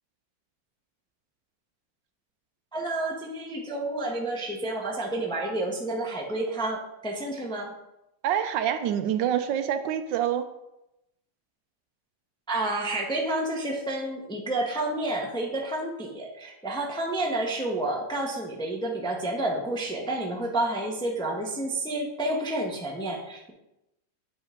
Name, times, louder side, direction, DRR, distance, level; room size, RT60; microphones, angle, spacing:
voice 1, 2.7-7.7 12.5-23.5, right 2 dB, 5° left, 0 dB, 0.6 m, -30 dB
voice 2, 8.2-10.5, right 9 dB, 80° right, 9 dB, 1.3 m, -26 dB
9.0 x 5.3 x 3.7 m, 0.89 s
omnidirectional pair, 2.0 m